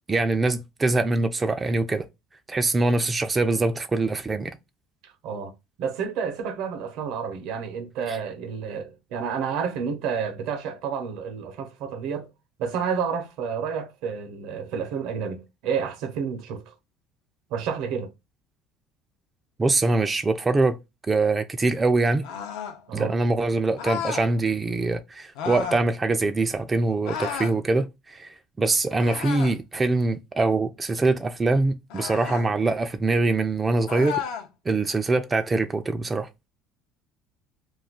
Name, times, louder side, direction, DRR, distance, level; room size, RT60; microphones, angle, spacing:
voice 1, 0.1-2.1 2.5-4.6 8.1-8.2 19.6-20.8 21.1-22.3 22.9-34.2 34.7-36.3, right 3 dB, 20° right, 0.3 m, -23 dB
voice 2, 5.0-12.3 12.6-16.7 17.5-18.1 22.9-23.1, right 6 dB, 75° right, 0.7 m, -30 dB
sound 1, 22.2-22.8 23.8-24.3 25.3-25.9 27.0-27.6 29.0-29.6 31.9-32.5 33.9-34.5, left 7 dB, 80° left, 0.6 m, -32 dB
2.4 x 2.3 x 3.5 m
supercardioid pair, 110°, 0 cm